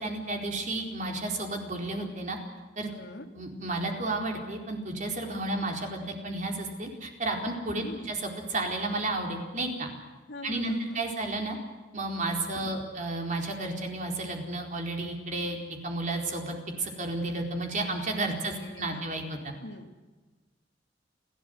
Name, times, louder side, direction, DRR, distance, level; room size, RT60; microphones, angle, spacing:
voice 1, 0.0-2.4 2.8-2.9 3.3-9.9 10.4-11.6 11.9-15.6 15.8-19.5, right 2 dB, 45° right, 2 dB, 4.4 m, -32 dB
voice 2, 2.9-3.3 7.8-8.1 10.3-11.2 18.6-19.0 19.6-19.9, left 1 dB, 75° left, 4 dB, 2.5 m, -43 dB
29.5 x 13.0 x 8.0 m, 1.3 s
head